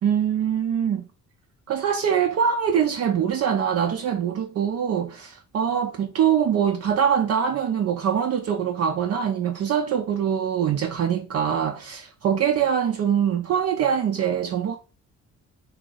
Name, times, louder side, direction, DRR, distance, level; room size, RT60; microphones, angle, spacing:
voice 1, 0.0-1.0 1.7-14.8, right 8 dB, 55° right, 0.5 m, -23 dB
3.0 x 2.8 x 3.8 m
cardioid pair, 90°, 30 cm